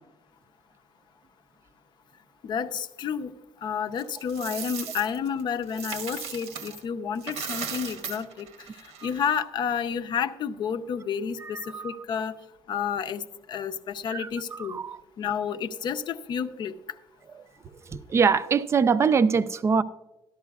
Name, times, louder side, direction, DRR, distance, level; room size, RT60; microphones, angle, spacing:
voice 1, 2.4-3.3 3.6-8.5 9.0-12.4 12.7-13.2 13.5-14.8 15.2-16.7, left 7 dB, 45° left, 0.6 m, -30 dB
Coin (dropping), 4.0-6.8 7.2-9.4, right 7 dB, 90° right, 1.2 m, -37 dB
voice 2, 18.1-19.8, right 5 dB, 25° right, 0.4 m, -22 dB
13.5 x 12.0 x 2.3 m
cardioid pair, 150°, 11 cm